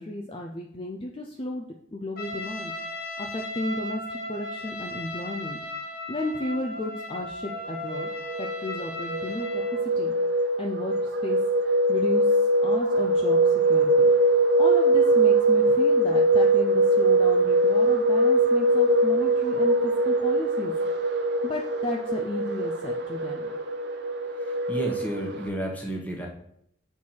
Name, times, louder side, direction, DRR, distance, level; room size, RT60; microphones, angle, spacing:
voice 1, 0.0-1.6 1.9-2.7 3.2-5.6 6.1-8.1 8.4-10.1 10.6-11.4 11.9-14.1 14.6-20.7 21.4-23.5, left 1 dB, 30° left, 1 dB, 0.5 m, -34 dB
Trumpet, 2.2-9.8, left 1 dB, 50° left, 1.3 m, -36 dB
sound 1, 7.7-25.5, right 1 dB, 60° right, 0.8 m, -22 dB
voice 2, 24.4-26.3, right 1 dB, 10° left, 0 dB, 1.2 m, -32 dB
7.3 x 4.5 x 4.5 m, 0.71 s
head